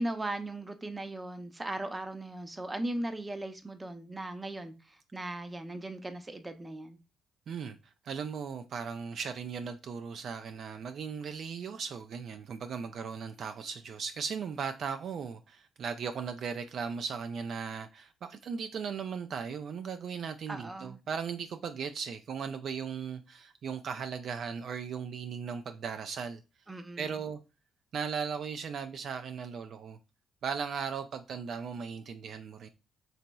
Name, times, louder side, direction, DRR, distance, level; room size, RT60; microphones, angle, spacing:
voice 1, 0.0-7.0 20.5-21.0 26.7-27.2, right 1 dB, 20° right, 0.6 m, -38 dB
voice 2, 8.0-26.4 27.0-27.4 27.9-30.0 30.4-32.7, right 6 dB, 60° right, 0.3 m, -37 dB
4.0 x 2.9 x 2.2 m
cardioid pair, 90°, 0 cm